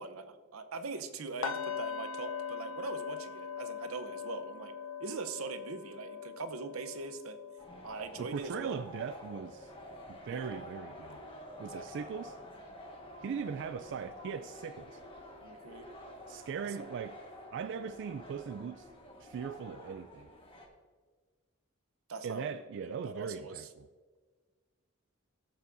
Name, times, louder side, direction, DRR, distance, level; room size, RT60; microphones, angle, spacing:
voice 1, 0.0-4.7 5.0-7.4 7.8-8.8 10.3-10.7 11.7-12.1 15.4-15.9 16.6-16.7 22.1-23.7, right 4 dB, 85° right, 0.8 m, -42 dB
sound 1, 1.4-11.4 11.7-12.0 12.4-12.5, left 7 dB, 70° left, 0.7 m, -43 dB
sound 2, 7.6-20.7, left 1 dB, 25° left, 1.4 m, -49 dB
voice 2, 8.2-9.7 10.1-11.2 11.6-12.4 13.2-15.0 16.3-17.1 17.5-18.9 19.2-20.3 22.2-23.9, right 6 dB, 60° right, 0.3 m, -39 dB
17.0 x 6.9 x 2.6 m
head